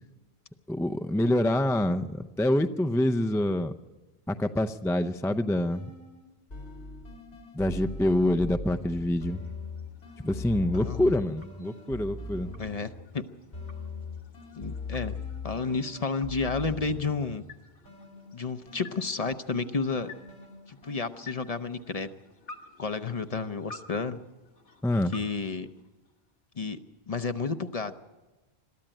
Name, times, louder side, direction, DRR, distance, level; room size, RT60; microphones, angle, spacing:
voice 1, 0.7-3.7 4.3-5.9 7.5-9.4 10.2-12.5 24.8-25.1, left 1 dB, 5° left, 8 dB, 0.4 m, -26 dB
sound 1, 5.7-6.2 6.5-13.2 13.5-17.5 17.9-21.6, left 3 dB, 85° left, 4.0 m, -41 dB
sound 2, 8.6-26.4, left 3 dB, 60° left, 1.8 m, -53 dB
voice 2, 10.7-11.1 12.6-13.2 14.5-15.2 15.4-17.4 18.3-20.1 20.7-22.1 22.8-24.2 25.1-25.7 26.6-26.8 27.1-28.0, left 4 dB, 40° left, 10 dB, 0.8 m, -31 dB
22.0 x 13.5 x 9.0 m, 1.1 s
omnidirectional pair, 1.0 m